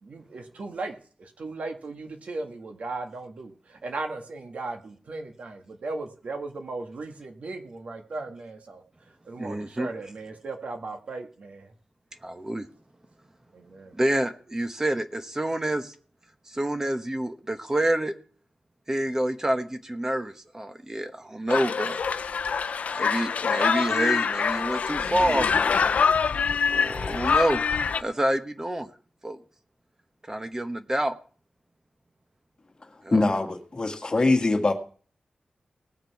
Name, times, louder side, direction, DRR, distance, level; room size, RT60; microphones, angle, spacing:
voice 1, 0.0-8.8 9.2-11.7 13.5-13.9, right 3 dB, 70° right, 1.7 m, -37 dB
voice 2, 9.4-9.9 12.2-12.7 13.9-15.9 16.5-18.1 18.9-22.0 22.9-25.5 26.5-27.6 28.0-28.9 29.2-29.4 30.3-31.2 33.0-33.2, right 1 dB, 20° right, 1.1 m, -28 dB
sound 1, 21.5-28.0, left 6 dB, 85° left, 0.5 m, -25 dB
voice 3, 33.1-34.7, left 2 dB, 35° left, 1.8 m, -23 dB
19.0 x 6.7 x 4.7 m
wide cardioid pair, 95°, 2 cm